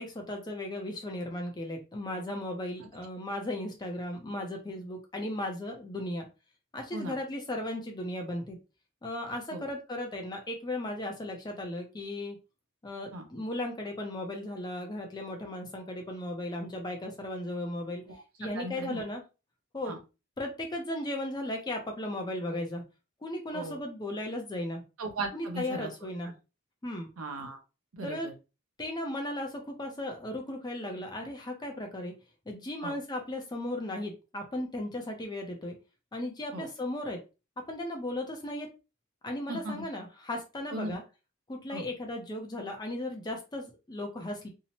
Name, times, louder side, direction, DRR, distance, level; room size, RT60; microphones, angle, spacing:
voice 1, 0.0-6.3 6.7-8.6 9.0-12.4 12.8-18.0 18.4-19.2 19.7-19.9 20.4-22.8 23.2-24.8 25.3-26.3 26.8-27.1 28.0-28.3 28.8-32.1 32.5-35.7 36.1-37.2 37.7-38.7 39.2-41.0 41.5-44.5, left 1 dB, 20° left, 2 dB, 0.4 m, -36 dB
voice 2, 18.1-19.0 19.8-20.0 23.5-23.8 25.0-25.9 27.2-27.6 27.9-28.3 32.8-33.0 36.5-36.7 39.5-39.8 40.7-41.0 41.7-41.8, right 2 dB, 70° right, 4 dB, 0.6 m, -37 dB
2.7 x 2.0 x 2.8 m, 0.30 s
head